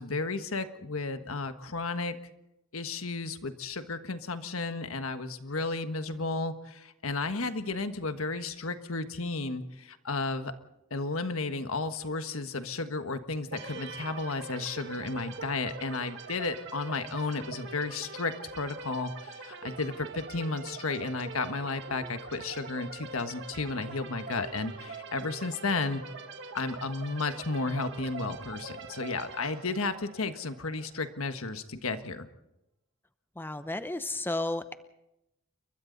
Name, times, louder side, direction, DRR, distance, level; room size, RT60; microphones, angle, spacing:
voice 1, 0.0-2.2 2.7-10.5 10.9-26.0 26.5-32.3, left 3 dB, 75° left, 9 dB, 1.5 m, -33 dB
sound 1, 13.5-31.1, right 4 dB, 55° right, 2.0 m, -44 dB
voice 2, 33.4-34.7, left 2 dB, 10° left, 11 dB, 0.7 m, -33 dB
29.0 x 23.0 x 4.0 m, 0.89 s
head